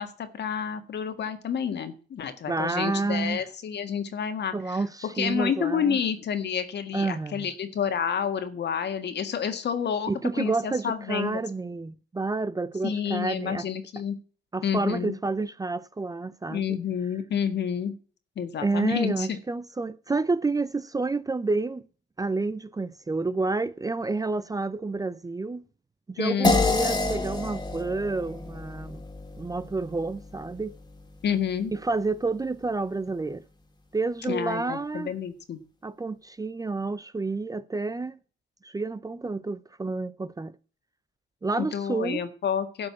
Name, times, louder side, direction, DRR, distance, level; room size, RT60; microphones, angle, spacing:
voice 1, 0.0-10.1 10.4-11.4 12.8-14.2 14.6-15.1 16.5-17.9 18.4-19.3 26.2-26.5 31.2-31.7 34.3-35.6 41.6-42.9, left 7 dB, 60° left, 1.8 m, -29 dB
voice 2, 2.5-3.5 4.5-6.0 6.9-7.5 10.1-13.7 14.5-16.8 18.6-21.8 22.2-25.6 26.1-29.0 29.4-30.7 31.7-33.4 33.9-35.1 35.8-38.2 38.6-40.5 41.4-42.2, right 3 dB, 20° right, 0.6 m, -29 dB
sound 1, 26.4-31.2, left 3 dB, 20° left, 2.0 m, -28 dB
12.5 x 5.2 x 8.5 m
cardioid pair, 90°, 20 cm